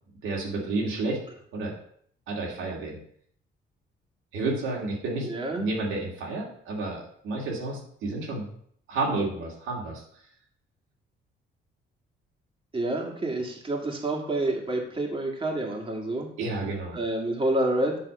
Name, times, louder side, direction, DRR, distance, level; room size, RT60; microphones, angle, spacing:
voice 1, 0.2-1.2 1.5-1.7 2.3-3.0 4.3-8.5 8.9-10.0 16.4-17.0, right 2 dB, 90° right, -3 dB, 2.6 m, -31 dB
voice 2, 5.2-5.6 12.7-16.3 16.9-18.0, right 1 dB, 25° right, 0 dB, 1.9 m, -28 dB
8.4 x 3.5 x 6.7 m, 0.63 s
cardioid pair, 90°, 20 cm